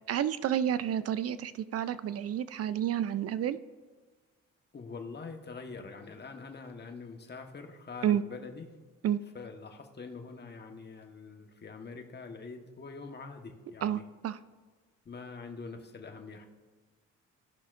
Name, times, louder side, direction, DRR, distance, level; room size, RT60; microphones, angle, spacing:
voice 1, 0.1-3.6 8.0-8.2 9.0-9.2 13.8-14.4, right 10 dB, 55° right, 14 dB, 0.4 m, -30 dB
voice 2, 4.7-8.7 9.3-14.0 15.0-16.5, left 4 dB, 35° left, 4 dB, 1.2 m, -44 dB
17.5 x 5.9 x 2.5 m, 1.4 s
cardioid pair, 90°, 30 cm